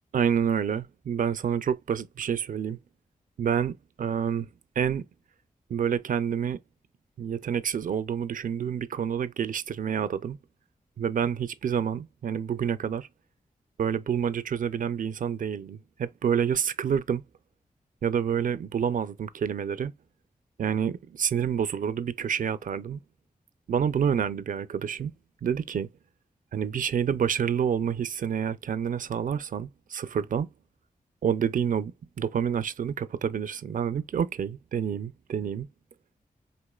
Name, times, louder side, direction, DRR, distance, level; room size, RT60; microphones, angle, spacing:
voice 1, 0.1-2.8 3.4-4.5 4.8-5.0 5.7-6.6 7.2-10.4 11.0-13.1 13.8-17.2 18.0-19.9 20.6-23.0 23.7-25.1 25.4-25.9 26.5-30.5 31.2-35.7, right 8 dB, 65° right, 0.4 m, -28 dB
4.4 x 2.9 x 2.3 m
cardioid pair, 55°, 15 cm